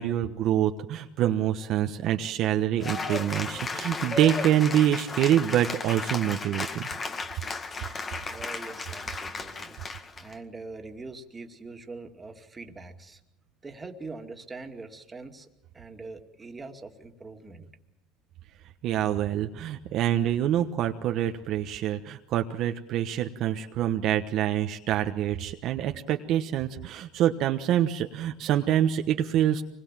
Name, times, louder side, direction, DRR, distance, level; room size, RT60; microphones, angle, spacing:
voice 1, 0.0-6.9 18.8-29.6, right 11 dB, 55° right, 5 dB, 1.2 m, -26 dB
Cheering / Applause, 2.8-10.3, left 4 dB, 25° left, 1.9 m, -34 dB
voice 2, 8.3-9.8 10.2-13.2 13.6-15.5 15.7-17.7, right 3 dB, 20° right, 4 dB, 2.4 m, -43 dB
25.0 x 21.0 x 7.5 m, 0.86 s
supercardioid pair, 115°, 0 cm